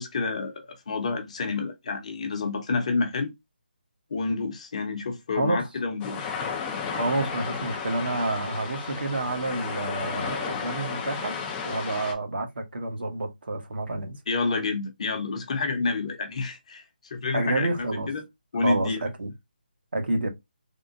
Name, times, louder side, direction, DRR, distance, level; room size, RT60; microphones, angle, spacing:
voice 1, 0.0-3.3 4.1-6.3 14.3-16.8 17.1-18.2 18.5-19.0, left 4 dB, 40° left, 0.8 m, -29 dB
sound 1, 6.0-12.1, left 6 dB, 10° left, 0.4 m, -33 dB
voice 2, 6.9-11.4 11.6-14.2 17.3-18.1 18.6-19.3 19.9-20.3, right 2 dB, 75° right, 1.1 m, -29 dB
3.5 x 2.1 x 2.5 m
hypercardioid pair, 165°, 5 cm